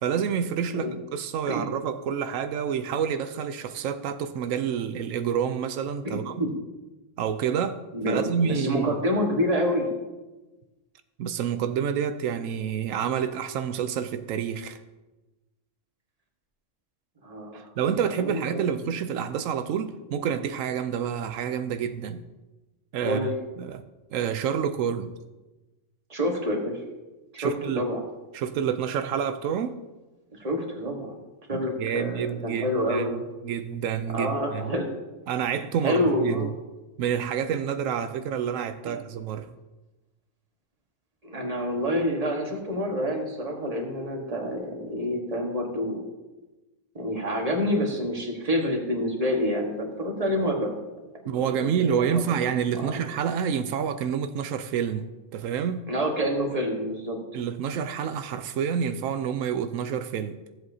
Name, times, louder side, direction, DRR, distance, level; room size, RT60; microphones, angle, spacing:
voice 1, 0.0-6.4 7.2-9.0 11.2-14.8 17.5-22.3 22.9-23.3 23.6-23.8 24.1-25.1 27.4-27.9 28.3-29.8 31.5-33.1 33.4-34.7 35.3-36.5 37.0-39.5 51.3-55.9 57.3-60.4, right 8 dB, 90° right, 1.0 m, -28 dB
voice 2, 6.0-6.5 7.9-9.9 17.2-17.6 18.1-18.7 23.0-23.3 26.1-26.8 27.4-28.0 30.3-31.2 31.5-33.2 34.1-34.9 35.8-36.5 38.8-39.0 41.2-46.0 46.9-50.7 51.3-52.3 52.8-53.0 55.9-57.2, equal, 30° right, 1.6 m, -27 dB
15.5 x 7.7 x 2.8 m
omnidirectional pair, 1.3 m